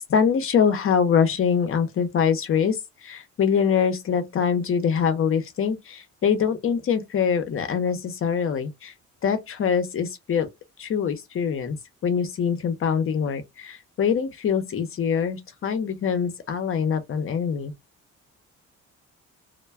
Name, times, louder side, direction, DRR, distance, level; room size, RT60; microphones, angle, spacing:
voice 1, 0.1-8.9 9.2-10.5 10.8-11.8 12.0-17.7, left 7 dB, 45° left, 0.7 m, -24 dB
2.2 x 2.2 x 3.2 m
cardioid pair, 90°, 30 cm